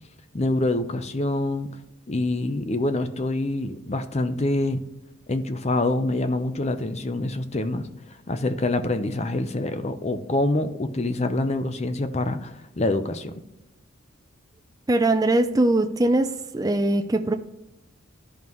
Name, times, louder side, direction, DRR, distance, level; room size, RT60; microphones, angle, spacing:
voice 1, 0.3-1.7 2.1-4.8 5.3-13.3, left 2 dB, 30° left, 0.6 m, -26 dB
voice 2, 14.9-17.3, right 2 dB, 15° right, 0.4 m, -21 dB
13.0 x 5.4 x 3.1 m
head